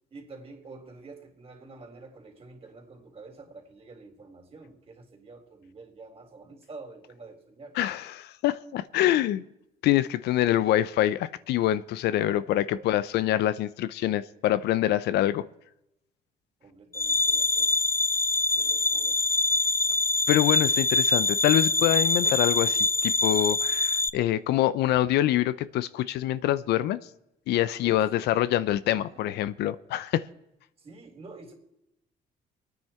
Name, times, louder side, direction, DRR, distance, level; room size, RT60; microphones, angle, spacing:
voice 1, 0.1-7.8 9.1-9.4 12.3-12.5 12.7-12.9 16.6-17.8 18.5-19.2 27.8-28.3 28.9-29.5 30.8-31.5, right 3 dB, 35° right, 3.7 m, -48 dB
voice 2, 7.8-9.4 9.8-15.4 20.3-27.0 27.5-30.2, left 13 dB, 75° left, 0.7 m, -25 dB
sound 1, 16.9-24.1, left 2 dB, 15° left, 0.5 m, -24 dB
25.0 x 9.5 x 4.4 m
cardioid pair, 110°, 17 cm